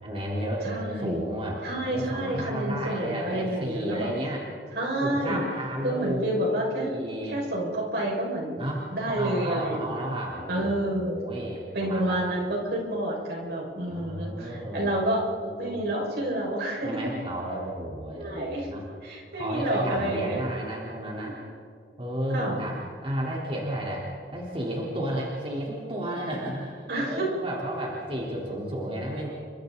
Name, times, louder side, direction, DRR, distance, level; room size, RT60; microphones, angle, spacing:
voice 1, 0.0-4.4 5.0-7.4 8.6-12.2 13.9-14.9 15.4-15.8 16.8-18.8 19.3-21.4 22.0-29.3, right 1 dB, 35° right, -4 dB, 4.0 m, -32 dB
voice 2, 0.6-1.2 1.6-4.1 4.7-5.4 5.8-7.0 7.3-10.0 10.5-11.2 11.7-15.2 15.6-16.9 18.1-18.7 19.0-20.4 21.2-21.3 22.3-22.6 26.9-27.3, right 1 dB, 65° right, -2 dB, 6.0 m, -29 dB
30.0 x 26.0 x 4.1 m, 2.1 s
head